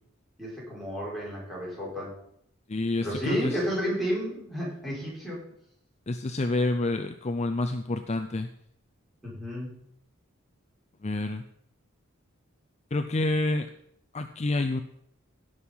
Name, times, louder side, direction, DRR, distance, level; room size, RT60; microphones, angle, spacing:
voice 1, 0.4-2.2 3.0-5.4 9.2-9.7, equal, ahead, -6 dB, 5.7 m, -31 dB
voice 2, 2.7-3.6 6.1-8.5 11.0-11.4 12.9-13.7 14.1-14.8, left 2 dB, 35° left, 7 dB, 0.6 m, -28 dB
16.0 x 6.4 x 5.6 m, 0.70 s
head